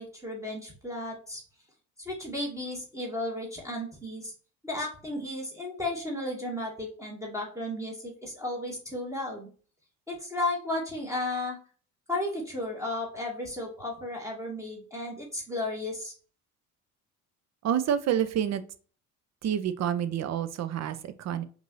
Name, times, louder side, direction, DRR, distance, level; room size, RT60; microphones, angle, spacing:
voice 1, 0.0-1.4 2.0-4.3 4.6-9.5 10.1-11.6 12.1-16.1, left 1 dB, 5° right, -2 dB, 1.4 m, -34 dB
voice 2, 17.6-18.6 19.4-21.4, right 9 dB, 35° right, 12 dB, 0.6 m, -28 dB
5.2 x 2.6 x 3.0 m, 0.40 s
hypercardioid pair, 60°, 46 cm